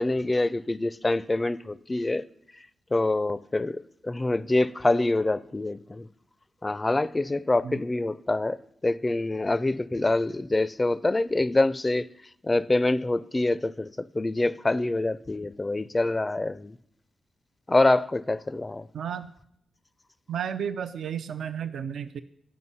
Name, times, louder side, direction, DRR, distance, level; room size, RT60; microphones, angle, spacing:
voice 1, 0.0-2.2 2.9-6.1 6.6-8.6 8.8-12.1 12.4-16.8 17.7-18.9, left 2 dB, 30° left, 0.4 m, -25 dB
voice 2, 18.9-19.3 20.3-22.2, right 8 dB, 75° right, 0.3 m, -32 dB
9.5 x 5.4 x 5.5 m
supercardioid pair, 40°, 0 cm